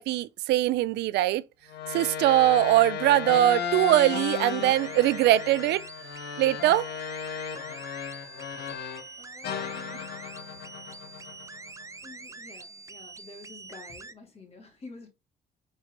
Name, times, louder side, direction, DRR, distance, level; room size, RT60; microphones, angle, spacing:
voice 1, 0.0-1.4 1.9-5.8 6.4-6.9, right 14 dB, 85° right, 0.5 m, -22 dB
sound 1, 1.7-9.1 9.4-11.8, left 7 dB, 70° left, 1.8 m, -35 dB
sound 2, 3.9-14.1, right 3 dB, 20° right, 0.8 m, -45 dB
voice 2, 9.2-10.1 12.0-15.1, left 3 dB, 35° left, 3.6 m, -49 dB
5.5 x 4.6 x 3.9 m
cardioid pair, 105°, 17 cm